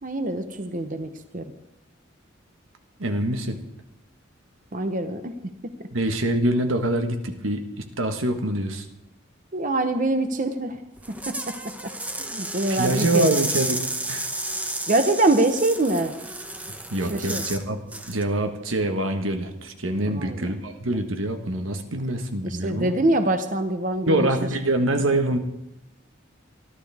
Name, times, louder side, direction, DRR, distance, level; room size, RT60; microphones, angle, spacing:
voice 1, 0.0-1.5 4.7-5.3 5.6-5.7 9.5-10.8 11.3-11.9 12.3-13.3 14.9-16.2 17.1-17.4 20.0-20.4 22.4-24.3, right 2 dB, 40° right, 8 dB, 0.9 m, -24 dB
voice 2, 3.0-3.6 5.9-8.8 12.7-13.8 14.1-14.3 16.9-17.8 18.0-22.9 24.1-25.4, right 1 dB, 90° right, 6 dB, 1.5 m, -25 dB
sound 1, 11.0-17.6 17.9-18.2, right 1 dB, 5° right, 0.8 m, -32 dB
27.0 x 11.5 x 3.6 m, 0.86 s
head